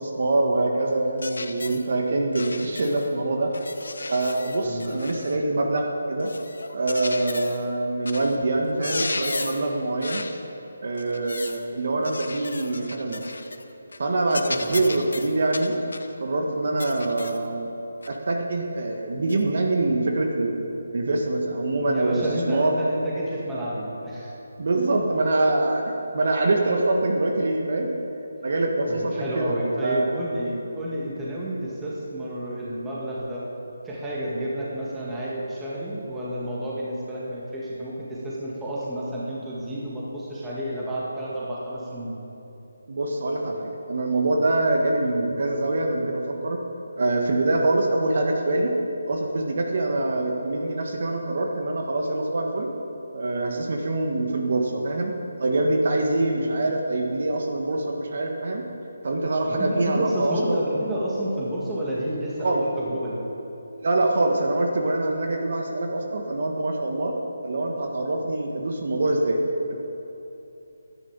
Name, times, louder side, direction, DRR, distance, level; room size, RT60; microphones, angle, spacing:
voice 1, 0.0-3.5 4.1-6.3 6.7-10.2 10.8-13.3 14.0-15.8 16.2-17.7 18.1-20.6 20.9-22.8 24.6-25.8 26.1-28.0 28.4-30.1 42.9-46.6 46.9-48.7 49.1-52.7 53.1-58.6 59.0-60.6 62.4-62.6 63.8-67.2 67.4-69.4 69.7-69.8, right 2 dB, 50° right, 1 dB, 1.6 m, -24 dB
sound 1, 1.2-1.9 2.3-3.1 3.5-5.4 6.2-7.7 8.1-8.4 8.7-9.7 10.0-10.4 11.0-11.6 12.0-13.6 13.9-14.1 14.3-16.1 16.8-17.5 18.0-18.2 19.3-19.4, left 3 dB, 80° left, 1.0 m, -35 dB
voice 2, 4.6-5.0 14.5-14.9 21.9-24.3 24.7-25.1 28.8-33.4 33.8-42.2 59.4-63.2, right 1 dB, 5° right, -7 dB, 1.8 m, -30 dB
12.5 x 10.5 x 7.2 m, 2.9 s
hypercardioid pair, 170°, 0 cm